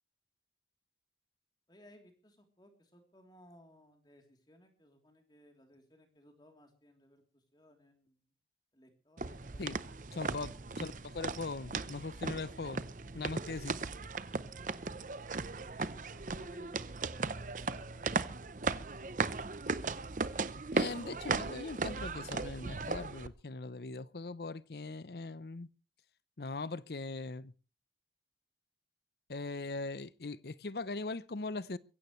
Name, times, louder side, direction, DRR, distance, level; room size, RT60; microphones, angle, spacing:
voice 1, 1.7-8.3 8.7-10.8 15.5-18.1, equal, 25° left, 3.3 m, -61 dB
sound 1, 9.2-23.3, right 4 dB, 45° right, 0.7 m, -37 dB
voice 2, 10.2-12.8 13.1-13.8 20.7-25.7 26.4-27.5 29.3-31.8, left 3 dB, 65° left, 0.7 m, -40 dB
22.0 x 16.0 x 3.2 m
head